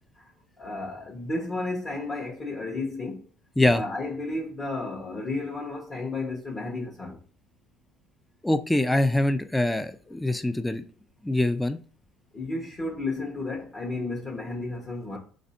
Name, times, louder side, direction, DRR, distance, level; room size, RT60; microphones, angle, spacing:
voice 1, 0.6-3.2 3.7-7.2 10.1-10.2 12.3-15.2, left 2 dB, 30° left, 0.9 m, -32 dB
voice 2, 8.4-10.8 11.2-11.8, left 1 dB, 5° left, 0.3 m, -24 dB
4.1 x 2.6 x 4.1 m
cardioid pair, 130°, 0 cm